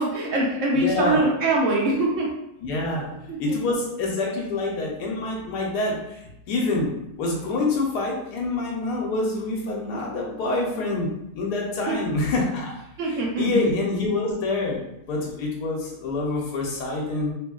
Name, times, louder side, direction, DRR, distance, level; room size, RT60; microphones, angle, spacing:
voice 1, 0.0-2.3 3.4-3.6 11.9-12.0 13.0-13.7, right 2 dB, 70° right, -2 dB, 0.8 m, -23 dB
voice 2, 0.7-1.2 2.6-3.1 3.4-6.9 7.2-12.7 13.0-14.8 15.1-17.3, left 2 dB, 85° left, -2 dB, 1.2 m, -26 dB
2.9 x 2.7 x 2.3 m, 0.86 s
omnidirectional pair, 1.7 m